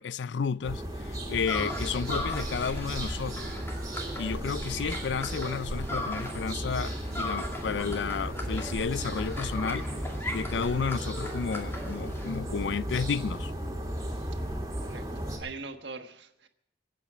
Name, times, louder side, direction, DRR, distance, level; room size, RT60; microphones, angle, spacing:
voice 1, 0.0-3.5 4.2-9.9 10.3-13.5, left 6 dB, 75° left, 0.4 m, -32 dB
sound 1, 0.6-15.4, right 1 dB, 20° right, 3.1 m, -35 dB
sound 2, 1.5-6.5 6.8-12.4, left 1 dB, 15° left, 2.3 m, -39 dB
voice 2, 14.8-16.5, right 4 dB, 80° right, 1.4 m, -42 dB
24.5 x 8.7 x 5.0 m
head